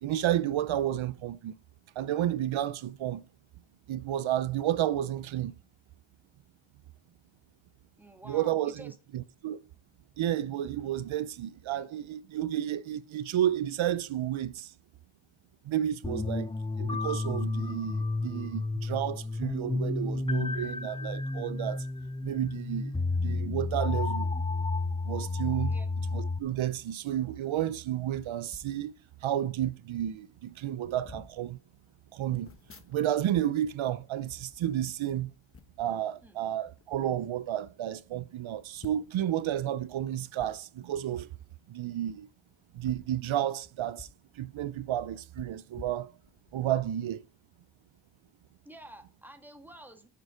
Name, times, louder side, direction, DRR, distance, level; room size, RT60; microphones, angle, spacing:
voice 1, 0.0-1.5 2.0-3.2 3.9-5.5 8.3-9.6 10.2-14.7 15.7-16.5 16.8-21.9 22.2-22.9 23.2-24.3 25.1-25.8 26.1-28.9 29.2-31.6 32.1-32.5 32.9-35.3 35.8-41.3 41.7-42.3 42.7-44.1 44.3-46.1 46.5-47.2, right 12 dB, 75° right, 0.6 m, -31 dB
voice 2, 8.0-9.0 25.7-25.9 36.2-36.4 48.6-50.1, right 1 dB, 5° right, 1.7 m, -49 dB
sound 1, 16.0-26.4, left 3 dB, 10° left, 0.6 m, -31 dB
sound 2, 28.5-28.8 29.6-29.7 29.9-30.2 30.8-31.3 32.3-33.4 33.6-35.0 35.5-35.9 36.6-37.0 37.6-37.7 37.9-38.0 38.8-39.3 40.3-40.5 42.0-42.1 42.7-44.2 44.5-44.6 45.3-46.6 47.0-47.2, left 4 dB, 30° left, 1.1 m, -51 dB
9.2 x 6.8 x 5.0 m
cardioid pair, 90°, 47 cm